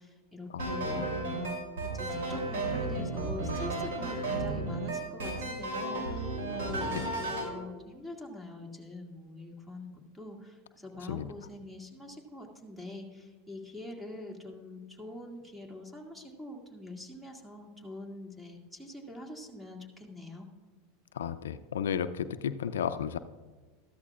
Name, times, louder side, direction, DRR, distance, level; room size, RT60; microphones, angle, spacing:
voice 1, 0.0-20.5, left 2 dB, 5° right, 1 dB, 2.2 m, -44 dB
voice 2, 0.5-1.0 11.1-11.3 21.1-23.2, left 8 dB, 85° left, 11 dB, 0.4 m, -33 dB
sound 1, 0.6-7.5, right 2 dB, 85° right, 3.1 m, -33 dB
13.5 x 13.0 x 2.4 m, 1.3 s
hypercardioid pair, 100°, 0 cm